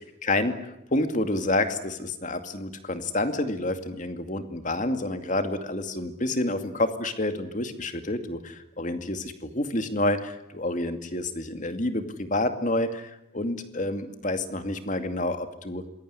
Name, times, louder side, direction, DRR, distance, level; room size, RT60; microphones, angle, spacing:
voice 1, 0.2-15.8, left 1 dB, 40° left, 8 dB, 2.4 m, -29 dB
27.0 x 21.5 x 9.7 m, 0.82 s
head